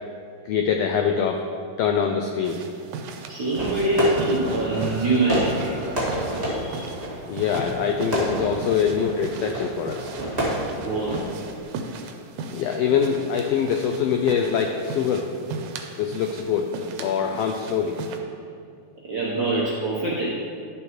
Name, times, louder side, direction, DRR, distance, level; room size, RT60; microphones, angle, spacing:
voice 1, 0.5-1.4 1.8-2.6 7.3-10.1 12.5-15.3 16.0-18.0, left 7 dB, 90° left, 3 dB, 1.4 m, -24 dB
sound 1, 2.4-18.2, right 4 dB, 90° right, 2.2 m, -38 dB
voice 2, 3.3-5.7 6.4-6.8 10.6-11.2 19.1-20.3, right 2 dB, 70° right, -6 dB, 1.0 m, -24 dB
Fireworks, 3.6-11.6, right 1 dB, 25° right, 1.8 m, -29 dB
11.5 x 7.2 x 3.0 m, 2.3 s
omnidirectional pair, 3.4 m